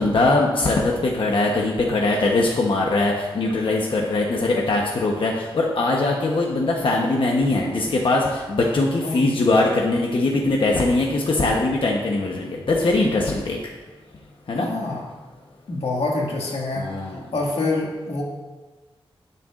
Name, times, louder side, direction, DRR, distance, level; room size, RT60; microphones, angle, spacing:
voice 1, 0.0-13.6 14.5-14.7 16.7-17.2, left 2 dB, 60° left, -1 dB, 1.0 m, -21 dB
voice 2, 9.0-9.4 14.5-15.0 15.7-16.9 17.3-18.2, left 2 dB, 90° left, -2 dB, 1.9 m, -26 dB
18.5 x 6.7 x 2.5 m, 1.3 s
wide cardioid pair, 145°, 10 cm